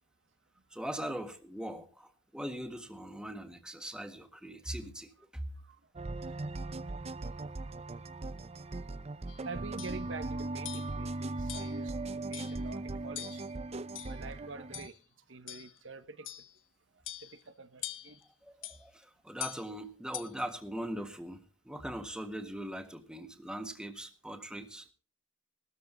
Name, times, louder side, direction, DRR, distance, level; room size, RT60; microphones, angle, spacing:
voice 1, 0.7-5.4 18.4-24.9, right 1 dB, 5° right, 1.6 m, -41 dB
sound 1, 6.0-14.9, right 2 dB, 35° right, 0.6 m, -39 dB
sound 2, 9.3-9.4 9.8-10.0 10.6-10.9 11.5-11.8 12.3-12.6 13.2-13.5 13.9-14.3 14.7-15.0 15.5-15.8 16.2-16.5 17.1-17.4 17.8-18.2 18.6-18.8 19.4-19.7 20.1-20.4, left 13 dB, 85° left, 1.2 m, -43 dB
voice 2, 9.4-11.9 12.3-13.4 14.1-14.9 15.3-16.3 17.2-18.2, right 4 dB, 70° right, 1.1 m, -46 dB
18.0 x 13.5 x 4.0 m
head